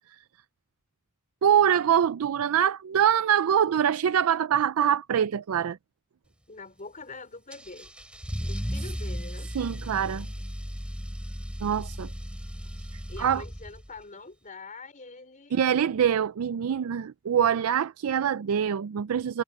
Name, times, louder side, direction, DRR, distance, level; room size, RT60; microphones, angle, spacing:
voice 1, 1.4-5.8 9.6-10.3 11.6-12.1 13.2-13.4 15.5-19.4, right 8 dB, 75° right, 0.4 m, -24 dB
voice 2, 6.5-7.9 8.4-9.5 13.1-15.6, left 3 dB, 35° left, 4.1 m, -44 dB
Car / Engine starting / Accelerating revving vroom, 7.5-14.0, equal, 5° right, 3.7 m, -36 dB
head